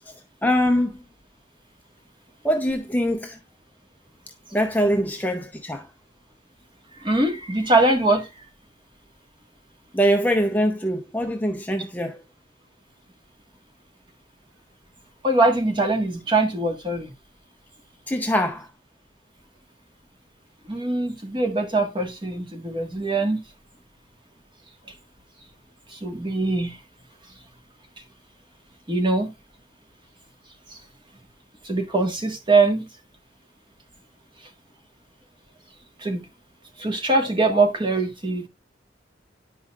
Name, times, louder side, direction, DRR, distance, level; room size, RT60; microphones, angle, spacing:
voice 1, 0.4-1.0 2.4-3.4 4.5-5.9 9.9-12.2 18.1-18.7, equal, 10° left, 0.7 m, -23 dB
voice 2, 7.0-8.3 15.2-17.1 20.7-23.4 25.9-26.8 28.9-29.3 30.7-30.8 31.6-32.9 36.0-36.2 36.8-38.5, right 2 dB, 25° right, 1.5 m, -22 dB
10.0 x 5.5 x 2.4 m
head